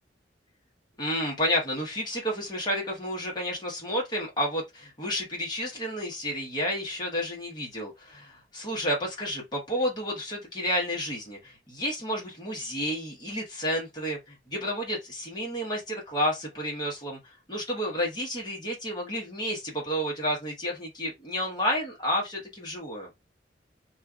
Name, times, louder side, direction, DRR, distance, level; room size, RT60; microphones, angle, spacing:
voice 1, 1.0-17.2 17.5-23.1, equal, 25° left, 1.3 m, -31 dB
3.1 x 2.7 x 2.4 m
head